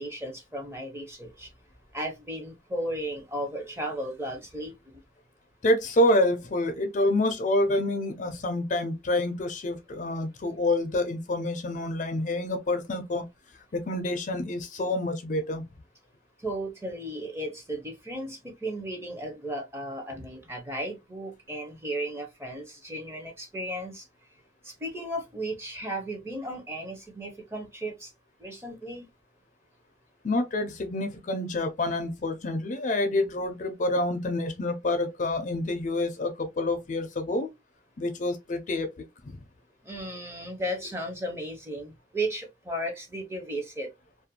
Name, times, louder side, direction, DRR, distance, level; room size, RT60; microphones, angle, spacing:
voice 1, 0.0-1.5 1.9-5.0 16.4-24.1 24.6-28.1 28.4-29.1 39.8-43.9, right 1 dB, 15° right, 0.6 m, -35 dB
voice 2, 5.6-13.3 13.7-15.6 30.2-37.5 38.0-39.4, left 1 dB, 45° left, 0.4 m, -27 dB
2.5 x 2.1 x 2.7 m
head